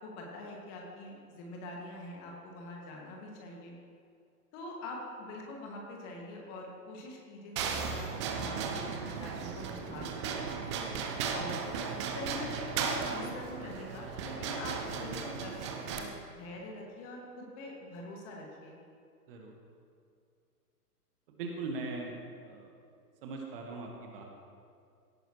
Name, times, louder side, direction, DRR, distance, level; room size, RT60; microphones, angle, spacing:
voice 1, 0.0-3.8 4.5-10.9 11.3-11.5 12.1-18.8, left 2 dB, 30° left, -1 dB, 2.0 m, -44 dB
sound 1, 7.6-16.0, right 5 dB, 20° right, 0.6 m, -36 dB
voice 2, 21.3-22.2 22.4-22.7 23.2-24.2, right 3 dB, 35° right, 1 dB, 1.5 m, -40 dB
16.5 x 9.0 x 3.1 m, 2.3 s
figure-of-eight pair, 120°, 48 cm